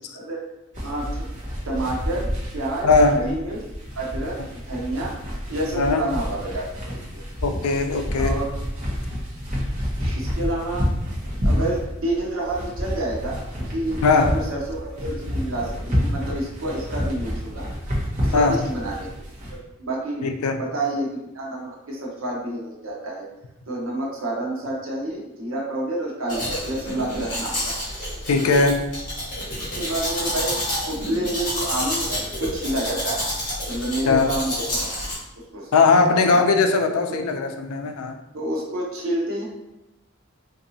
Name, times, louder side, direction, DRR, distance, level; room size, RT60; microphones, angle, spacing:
voice 1, 0.1-0.4 0.8-1.2 1.6-2.3 2.5-3.6 3.9-4.4 4.7-5.1 5.5-7.2 8.2-8.5 10.0-10.9 11.4-17.7 18.2-19.1 19.5-20.3 20.6-23.3 23.7-27.7 29.6-30.6 30.9-33.3 33.7-35.0 35.4-35.7 36.1-36.4 37.1-37.2 38.3-39.4, right 1 dB, 65° right, -3 dB, 0.8 m, -29 dB
sound 1, 0.7-19.6, equal, 35° right, 0.9 m, -29 dB
voice 2, 2.8-3.2 5.8-6.0 7.4-8.3 14.0-14.3 18.3-18.6 20.2-20.6 28.3-28.8 34.1-34.3 35.7-38.1, left 4 dB, 90° left, 6 dB, 0.4 m, -19 dB
Domestic sounds home sounds, 26.3-35.2, left 1 dB, 35° left, 1.3 m, -29 dB
3.8 x 2.6 x 2.7 m, 0.92 s
head